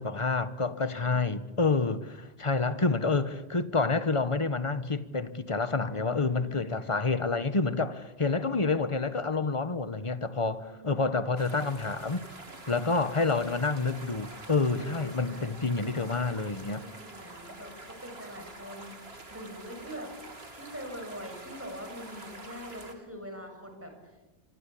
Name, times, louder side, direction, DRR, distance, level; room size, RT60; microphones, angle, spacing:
voice 1, 0.0-12.3 12.7-16.8, left 3 dB, 30° left, 1.3 m, -28 dB
voice 2, 5.9-6.6 10.5-11.2 14.8-15.7 16.8-20.1 20.5-23.9, equal, 10° right, 7.4 m, -44 dB
sound 1, 11.4-22.9, right 2 dB, 65° right, 3.2 m, -47 dB
25.5 x 25.0 x 8.6 m
omnidirectional pair, 1.1 m